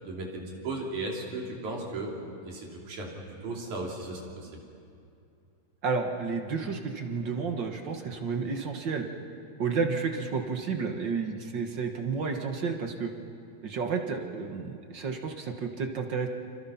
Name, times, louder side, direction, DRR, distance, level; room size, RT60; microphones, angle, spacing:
voice 1, 0.0-4.5, right 2 dB, 75° right, -1 dB, 4.7 m, -36 dB
voice 2, 5.8-9.1 9.6-13.1 13.6-16.3, right 5 dB, 50° right, 4 dB, 1.6 m, -31 dB
29.0 x 26.0 x 5.8 m, 2.5 s
omnidirectional pair, 3.4 m